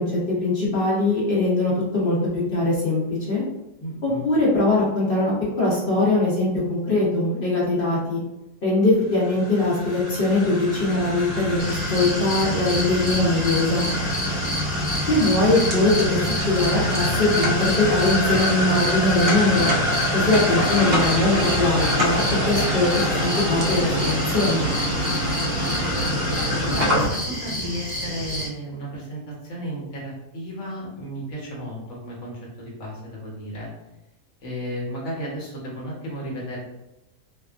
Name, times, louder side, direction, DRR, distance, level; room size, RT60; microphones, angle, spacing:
voice 1, 0.0-3.4 4.0-8.2 8.6-13.9 15.1-16.2 16.5-19.7 20.1-24.7, left 2 dB, 70° left, -5 dB, 0.5 m, -21 dB
voice 2, 3.8-4.2 14.8-14.9 26.7-33.7 34.4-36.6, equal, 50° left, -4 dB, 1.1 m, -34 dB
sound 1, 9.1-27.1, left 1 dB, 55° right, 0.6 m, -25 dB
sound 2, 11.6-28.5, left 1 dB, 10° left, 0.4 m, -30 dB
2.8 x 2.3 x 2.3 m, 0.93 s
omnidirectional pair, 1.8 m